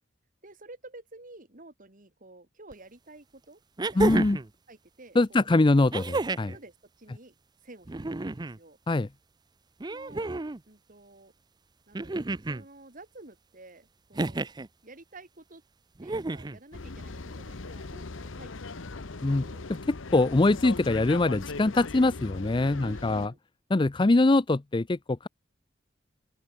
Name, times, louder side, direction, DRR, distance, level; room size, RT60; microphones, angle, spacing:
voice 1, 0.4-4.2 4.7-5.5 6.5-7.3 7.6-8.0 8.2-8.8 9.8-10.3 10.7-11.3 11.9-14.5 14.8-15.6 16.0-18.7 18.9-19.7 22.8-23.4, right 2 dB, 45° right, 2.8 m, -51 dB
sound 1, 2.7-2.8 3.8-4.5 5.9-6.6 7.8-8.6 9.8-10.6 11.9-12.6 14.1-14.7 16.0-16.6 17.9-18.0, right 2 dB, 20° right, 0.5 m, -31 dB
voice 2, 3.9-4.4 5.2-6.5 8.9-9.1 19.2-19.4 19.7-19.8 20.1-23.3 23.7-25.3, left 2 dB, 25° left, 0.5 m, -23 dB
sound 2, 16.7-23.3, left 3 dB, 85° left, 1.1 m, -39 dB
open air
head